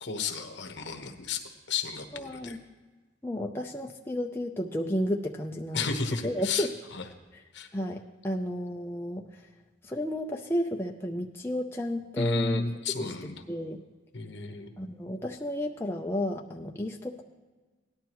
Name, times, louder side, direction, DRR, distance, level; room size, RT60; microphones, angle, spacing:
voice 1, 0.0-1.4 1.7-2.6 5.7-6.7 6.9-7.0 7.5-7.7 12.2-13.3 14.1-14.7, left 4 dB, 65° left, 6 dB, 1.1 m, -32 dB
voice 2, 2.1-2.6 3.2-5.9 6.2-6.8 7.3-7.4 7.7-9.5 9.8-12.6 13.0-13.8 14.8-17.2, left 1 dB, 10° left, 0 dB, 0.5 m, -32 dB
17.5 x 11.5 x 3.0 m, 1.3 s
head